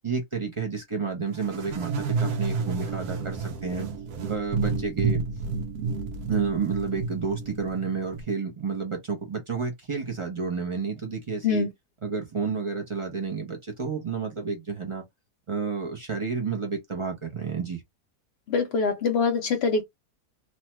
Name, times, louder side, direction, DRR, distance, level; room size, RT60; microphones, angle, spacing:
voice 1, 0.0-3.9 4.3-5.2 6.3-11.7 12.0-15.0 15.5-17.8, right 5 dB, 35° right, 0.5 m, -30 dB
sound 1, 1.4-8.2, right 4 dB, 75° right, 1.1 m, -30 dB
voice 2, 18.5-19.8, left 4 dB, 65° left, 0.6 m, -24 dB
3.0 x 2.2 x 3.0 m
omnidirectional pair, 1.7 m